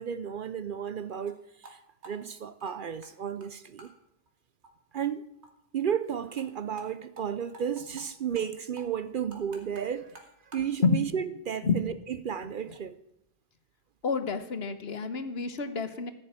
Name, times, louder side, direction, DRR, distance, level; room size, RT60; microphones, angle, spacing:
voice 1, 0.0-1.8 2.0-3.9 4.9-5.3 5.7-10.2 10.5-13.0, right 8 dB, 55° right, 0.7 m, -33 dB
sound 1, 1.2-1.4 1.6-1.8 2.0-3.1 3.4-3.5 3.8-3.9 4.3-4.4 4.6-4.7 5.0-5.1 5.4-5.5 5.8-5.9 6.2-6.5 6.8-6.9 7.2-7.3 7.5-8.1 8.4-8.5 8.8-10.7, right 2 dB, 75° right, 2.2 m, -50 dB
voice 2, 14.0-16.1, left 5 dB, 65° left, 1.3 m, -28 dB
14.5 x 6.9 x 8.8 m
omnidirectional pair, 1.1 m